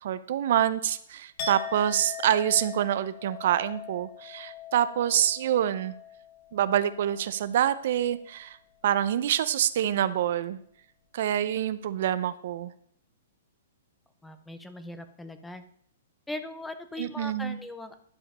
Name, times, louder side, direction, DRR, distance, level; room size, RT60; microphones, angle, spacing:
voice 1, 0.0-5.9 6.5-8.6 8.8-10.6 11.1-12.7 17.0-17.6, right 11 dB, 55° right, 15 dB, 0.5 m, -26 dB
Chink clink, 1.4-7.3 7.6-8.0, left 7 dB, 35° left, 1.7 m, -41 dB
voice 2, 14.2-15.6 16.3-18.0, left 2 dB, 5° left, 9 dB, 0.7 m, -39 dB
11.5 x 5.0 x 5.4 m, 0.66 s
hypercardioid pair, 155°, 0 cm